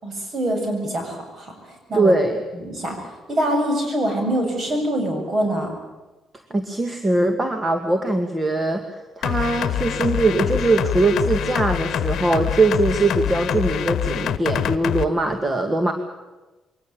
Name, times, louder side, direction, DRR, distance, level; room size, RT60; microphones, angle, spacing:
voice 1, 0.0-2.1 2.5-5.7, right 1 dB, 45° right, 4 dB, 7.6 m, -25 dB
voice 2, 1.9-2.4 6.5-8.8 9.2-15.9, right 2 dB, 25° right, 6 dB, 2.1 m, -21 dB
sound 1, 9.2-15.1, left 10 dB, 70° left, 1.0 m, -25 dB
23.0 x 18.5 x 8.8 m, 1.2 s
cardioid pair, 90°, 0 cm